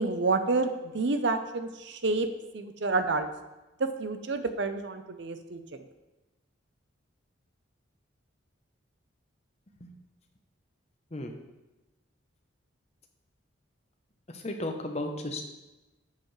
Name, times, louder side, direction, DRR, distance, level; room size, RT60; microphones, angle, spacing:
voice 1, 0.0-2.3 2.5-3.3 3.8-5.6, right 3 dB, 60° right, 9 dB, 0.7 m, -29 dB
voice 2, 14.4-15.4, left 1 dB, 30° left, 3 dB, 0.8 m, -34 dB
9.7 x 6.8 x 3.3 m, 1.0 s
head